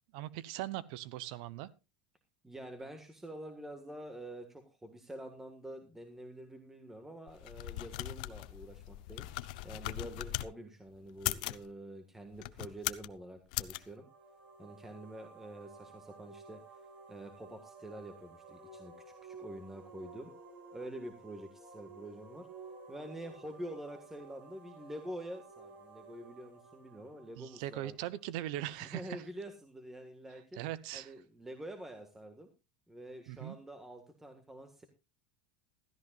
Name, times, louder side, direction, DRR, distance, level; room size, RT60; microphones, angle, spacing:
voice 1, 0.1-1.7 27.4-29.2 30.6-31.1 33.3-33.6, right 14 dB, 65° right, 0.8 m, -40 dB
voice 2, 2.4-9.3 9.6-14.1 14.6-16.8 17.1-20.3 20.7-22.5 22.9-28.0 28.8-30.6 30.9-32.5 32.9-34.8, right 1 dB, 10° right, 1.6 m, -47 dB
sound 1, 7.3-10.5 11.1-11.6 12.3-13.1 13.5-13.8, left 17 dB, 75° left, 0.7 m, -39 dB
sound 2, 13.7-28.4, right 3 dB, 30° right, 7.3 m, -54 dB
16.0 x 14.0 x 2.4 m
supercardioid pair, 140°, 4 cm